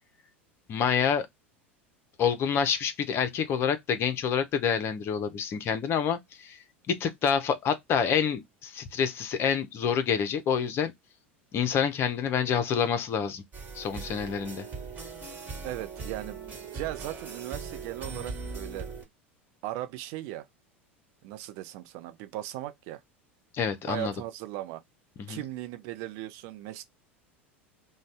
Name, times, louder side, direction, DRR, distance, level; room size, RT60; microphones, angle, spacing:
voice 1, 0.7-1.3 2.2-6.6 6.9-10.9 11.5-13.4 13.7-14.7 23.5-24.1 25.3-25.4, left 7 dB, 40° left, 0.7 m, -27 dB
sound 1, 13.5-19.0, right 4 dB, 25° right, 1.4 m, -39 dB
voice 2, 15.6-16.5 16.7-18.9 19.6-20.5 21.2-23.0 23.9-24.8 25.3-26.8, right 15 dB, 55° right, 0.5 m, -37 dB
2.6 x 2.2 x 3.3 m
figure-of-eight pair, 80°, 7 cm